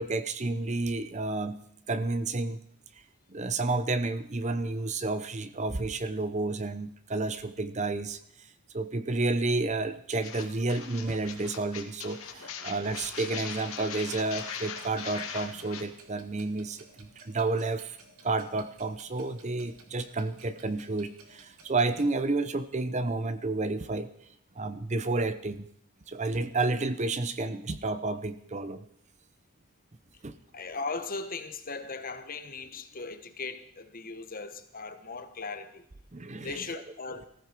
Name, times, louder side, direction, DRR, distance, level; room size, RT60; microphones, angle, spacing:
voice 1, 0.0-1.6 1.9-2.6 3.3-8.2 8.7-18.0 18.2-24.1 24.6-25.7 26.1-28.8 30.2-30.3 36.1-36.8, right 3 dB, 30° right, 12 dB, 0.7 m, -31 dB
sound 1, 10.2-15.8, left 6 dB, 75° left, 2.3 m, -40 dB
Clock, 12.8-22.1, right 3 dB, 90° right, 2.3 m, -56 dB
voice 2, 30.5-35.8 36.4-37.3, left 4 dB, 40° left, 9 dB, 1.3 m, -38 dB
19.5 x 15.0 x 4.6 m, 0.69 s
head